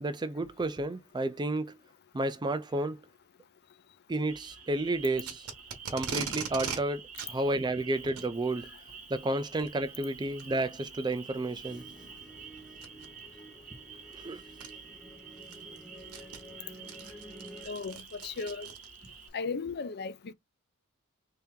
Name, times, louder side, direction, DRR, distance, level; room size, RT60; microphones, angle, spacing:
voice 1, 0.0-1.7 2.1-3.0 4.1-5.5 5.9-8.7 9.1-11.8 14.1-14.4, right 2 dB, 20° right, 0.4 m, -31 dB
sound 1, 4.3-19.3, right 6 dB, 35° right, 1.0 m, -49 dB
Packing tape duct tape, 5.2-6.8 7.1-7.3 8.0-8.3 9.4-9.7 10.4-10.5 11.1-11.2 12.8-13.1 14.1-14.2 14.6-14.7 15.2-19.1, right 6 dB, 80° right, 1.0 m, -39 dB
sound 2, 11.6-17.7, right 1 dB, 5° left, 0.9 m, -51 dB
voice 2, 17.7-18.7 19.3-20.3, left 4 dB, 50° left, 0.5 m, -36 dB
3.4 x 2.8 x 3.6 m
head